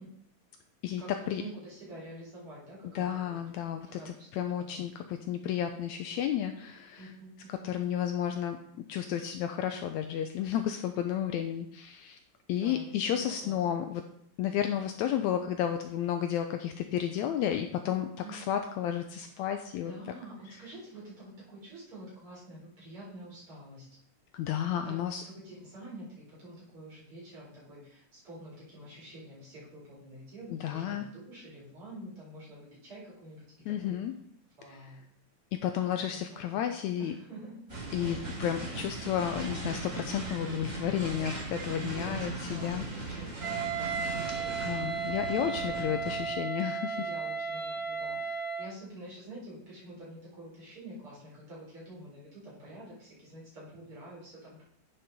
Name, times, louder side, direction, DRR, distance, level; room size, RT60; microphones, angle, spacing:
voice 1, 1.0-3.4 3.9-5.2 7.0-7.7 12.5-13.8 18.2-18.4 19.3-19.4 19.8-23.9 24.8-34.0 34.6-35.1 35.8-36.0 36.3-36.7 37.0-37.6 41.1-41.3 41.8-42.2 42.5-45.5 46.9-48.2 48.6-54.6, right 1 dB, 45° right, -7 dB, 4.9 m, -48 dB
voice 2, 3.0-7.1 7.5-8.6 8.9-12.2 12.5-14.0 14.4-19.9 24.3-25.2 30.5-31.1 33.7-34.1 35.5-37.1 37.9-43.2 44.6-47.0, left 10 dB, 80° left, 6 dB, 1.7 m, -32 dB
sound 1, 37.7-46.3, right 2 dB, 20° right, 1.1 m, -39 dB
Wind instrument woodwind instrument, 43.4-48.8, right 5 dB, 60° right, 2.5 m, -34 dB
9.9 x 5.4 x 4.1 m, 0.67 s
omnidirectional pair, 3.6 m